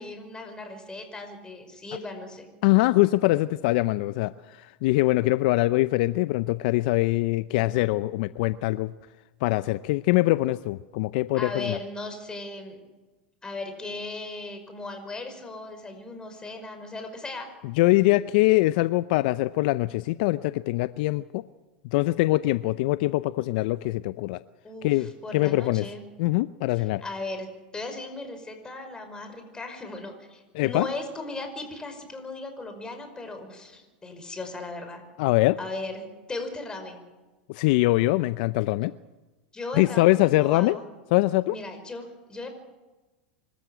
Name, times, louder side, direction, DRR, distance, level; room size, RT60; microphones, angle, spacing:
voice 1, 0.0-2.5 11.3-12.8 13.4-17.5 24.6-26.0 26.7-27.5 27.7-35.0 35.6-37.0 39.5-40.8 41.5-42.5, left 2 dB, 15° left, 6 dB, 5.5 m, -37 dB
voice 2, 2.6-8.9 9.4-11.8 17.6-21.4 21.9-24.4 24.8-25.9 26.2-27.0 30.5-30.9 35.2-35.6 37.5-38.9 39.7-40.8 41.1-41.6, left 19 dB, 60° left, 15 dB, 0.6 m, -23 dB
25.5 x 14.0 x 8.2 m, 1.2 s
hypercardioid pair, 105°, 5 cm